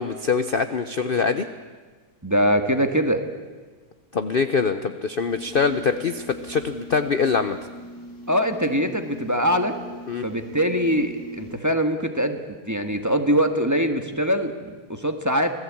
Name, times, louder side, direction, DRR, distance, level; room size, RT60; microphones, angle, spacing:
voice 1, 0.0-1.5 4.1-7.6 10.1-10.2, left 5 dB, 45° left, 10 dB, 0.8 m, -23 dB
voice 2, 2.2-3.2 8.3-9.7 10.2-12.4 12.7-15.5, equal, 10° right, 6 dB, 1.4 m, -22 dB
sound 1, 5.3-11.5, right 1 dB, 80° left, 6.9 m, -41 dB
26.5 x 18.0 x 8.7 m, 1.4 s
omnidirectional pair, 1.7 m